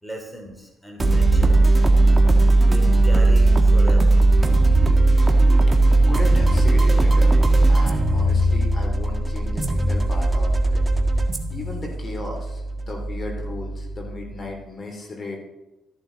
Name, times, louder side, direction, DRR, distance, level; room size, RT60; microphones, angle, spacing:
voice 1, 0.0-1.5 2.6-4.2 4.7-4.8 11.3-11.4, equal, ahead, 2 dB, 3.2 m, -37 dB
sound 1, 1.0-14.4, right 2 dB, 20° right, 1.6 m, -18 dB
voice 2, 6.1-7.4 7.7-10.8 11.5-15.4, left 2 dB, 40° left, 2 dB, 3.1 m, -35 dB
14.0 x 10.5 x 4.0 m, 1.0 s
cardioid pair, 90°, 0 cm